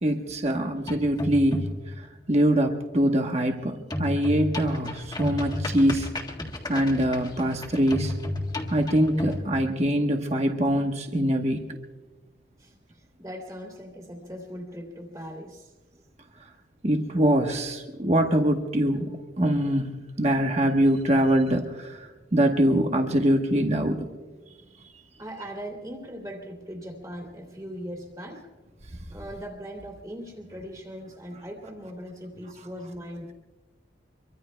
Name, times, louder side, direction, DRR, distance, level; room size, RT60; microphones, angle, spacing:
voice 1, 0.0-1.7 2.3-6.1 6.7-8.1 8.7-11.6 16.8-24.1, right 1 dB, 35° right, 3 dB, 1.1 m, -23 dB
sound 1, 0.8-1.9 3.9-9.5, left 1 dB, 20° left, 1.7 m, -32 dB
voice 2, 13.2-15.7 25.2-28.5 29.1-33.3, equal, 20° right, 1 dB, 2.8 m, -39 dB
25.0 x 24.0 x 2.2 m, 1.2 s
head